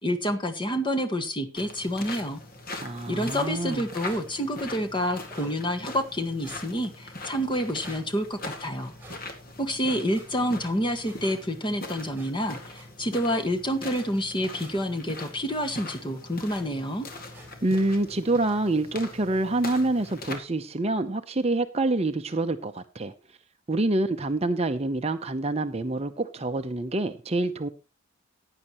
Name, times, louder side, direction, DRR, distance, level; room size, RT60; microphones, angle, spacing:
voice 1, 0.0-2.4 3.1-8.9 9.6-17.1, equal, 20° left, 6 dB, 1.5 m, -28 dB
sound 1, 1.5-20.4, left 2 dB, 40° left, 2.0 m, -41 dB
voice 2, 2.8-3.9 17.6-23.1 23.7-27.7, right 2 dB, 30° right, 8 dB, 0.6 m, -26 dB
Bullet passbys, 3.1-3.3 4.0-4.2 5.3-5.6 6.4-6.7 7.8-8.0 9.0-9.2 10.1-10.2 11.0-11.2 12.1-12.3 12.7-12.9 13.9-14.1 14.6-14.7 15.6-15.8 16.5-16.6 17.3-17.5, right 1 dB, 10° right, 5.0 m, -48 dB
15.5 x 9.9 x 3.0 m, 0.29 s
head